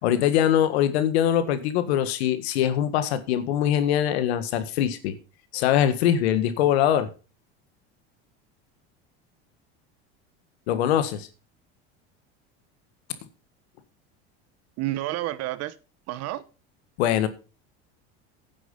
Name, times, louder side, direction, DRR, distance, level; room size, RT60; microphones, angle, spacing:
voice 1, 0.0-5.2 5.5-7.1 10.7-11.3 17.0-17.3, left 10 dB, 80° left, 1.7 m, -22 dB
voice 2, 14.8-15.7 16.1-16.4, right 15 dB, 55° right, 1.1 m, -29 dB
10.5 x 7.9 x 5.4 m
supercardioid pair, 110°, 31 cm